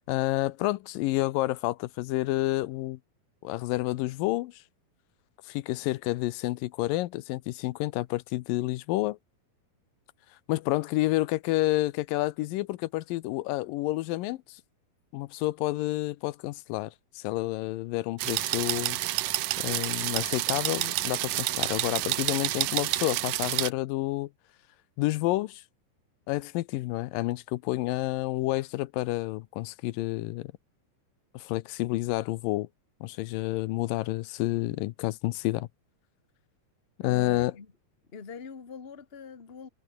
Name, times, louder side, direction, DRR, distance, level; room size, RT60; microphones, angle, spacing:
voice 1, 0.1-3.0 3.4-4.6 5.5-9.2 10.5-14.6 15.1-19.0 19.6-24.3 25.0-25.6 26.3-30.5 31.3-32.7 33.0-35.7 37.0-37.5, left 18 dB, 85° left, 2.4 m, -29 dB
sound 1, 18.2-23.7, right 17 dB, 80° right, 2.5 m, -29 dB
voice 2, 37.0-37.7 38.1-39.7, left 5 dB, 25° left, 1.4 m, -43 dB
omnidirectional pair, 3.9 m